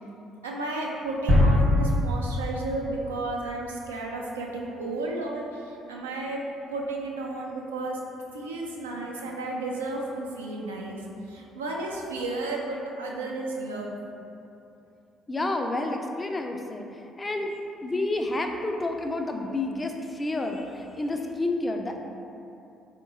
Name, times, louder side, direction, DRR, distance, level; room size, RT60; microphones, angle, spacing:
voice 1, 0.4-6.4 6.7-8.0 8.3-11.0 11.3-14.0, right 2 dB, 85° right, -1 dB, 0.3 m, -33 dB
sound 1, 1.3-3.2, left 1 dB, 60° right, 1.0 m, -22 dB
voice 2, 15.3-16.9 17.2-22.1, left 2 dB, 25° left, 3 dB, 0.3 m, -30 dB
3.8 x 2.9 x 2.4 m, 2.7 s
hypercardioid pair, 50°, 0 cm